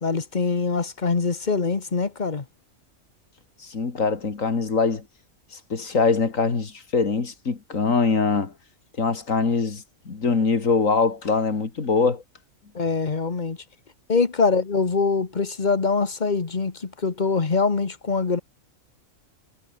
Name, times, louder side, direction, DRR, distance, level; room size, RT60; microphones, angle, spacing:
voice 1, 0.0-2.4 12.7-13.6 14.1-18.4, left 4 dB, 35° left, 1.5 m, -23 dB
voice 2, 3.6-5.0 5.7-8.5 9.0-12.2, left 4 dB, 70° left, 2.7 m, -23 dB
omnidirectional pair, 1.4 m